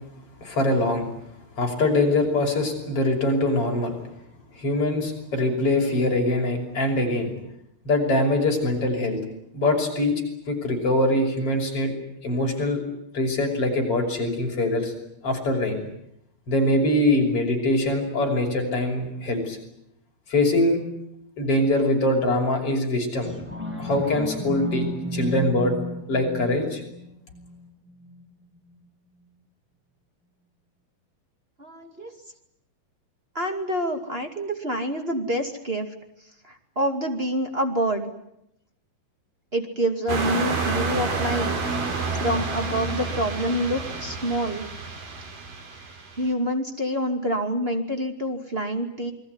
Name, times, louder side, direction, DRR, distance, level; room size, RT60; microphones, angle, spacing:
voice 1, 0.4-1.1 1.6-4.0 4.6-7.3 7.9-9.2 9.5-10.1 10.5-11.9 12.2-12.8 13.1-14.9 15.2-15.8 16.5-19.6 20.3-20.8 21.4-23.3 23.8-24.9 25.1-25.7 26.1-26.8, left 1 dB, 40° left, 2 dB, 6.9 m, -23 dB
sound 1, 23.2-28.3 28.7-28.8, left 1 dB, 5° right, 6.4 m, -33 dB
voice 2, 31.6-32.1 33.3-35.9 36.4-38.1 39.5-41.6 42.2-44.7 46.2-49.1, equal, 20° right, 4 dB, 2.0 m, -27 dB
sound 2, 40.1-46.2, right 4 dB, 60° right, 5.4 m, -29 dB
28.5 x 21.5 x 9.7 m, 0.79 s
omnidirectional pair, 4.2 m